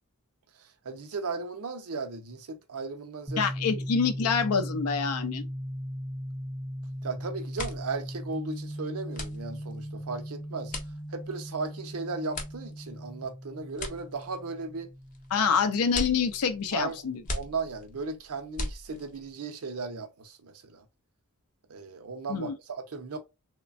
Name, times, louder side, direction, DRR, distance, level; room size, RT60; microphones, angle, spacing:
voice 1, 0.8-3.5 7.0-10.7 11.1-14.9 16.7-17.0 17.3-20.8 21.7-23.2, right 4 dB, 75° right, 0.6 m, -36 dB
sound 1, 3.3-16.9, equal, 5° right, 0.5 m, -38 dB
voice 2, 3.4-5.5 15.3-17.2 22.3-22.5, left 6 dB, 80° left, 0.5 m, -26 dB
sound 2, 6.8-7.1 7.4-19.3, left 2 dB, 35° left, 0.6 m, -40 dB
3.0 x 2.2 x 2.5 m
head